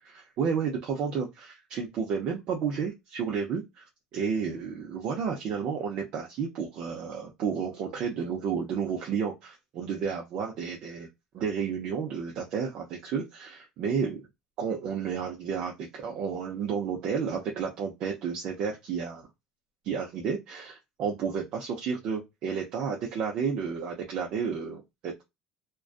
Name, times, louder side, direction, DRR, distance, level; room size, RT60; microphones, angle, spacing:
voice 1, 0.1-11.1 11.3-14.3 14.6-19.3 19.8-25.2, right 6 dB, 45° right, 0 dB, 0.5 m, -31 dB
2.4 x 2.2 x 2.3 m, 0.21 s
cardioid pair, 175°, 2 cm